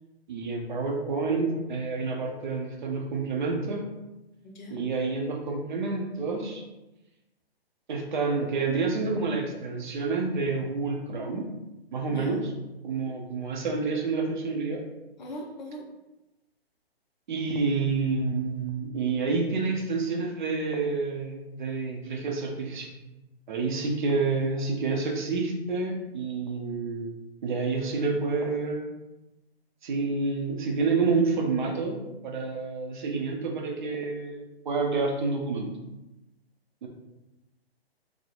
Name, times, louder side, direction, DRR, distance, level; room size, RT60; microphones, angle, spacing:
voice 1, 0.3-3.8 4.7-6.6 7.9-11.5 11.9-12.5 12.8-14.8 17.3-22.9 23.5-27.1 27.4-28.9 29.8-35.7 36.8-36.9, right 4 dB, 50° right, 1 dB, 0.6 m, -28 dB
voice 2, 4.4-4.9 12.0-12.4 15.2-15.8, left 1 dB, 45° left, 0 dB, 0.6 m, -40 dB
3.0 x 2.0 x 2.4 m, 0.99 s
figure-of-eight pair, 130°, 31 cm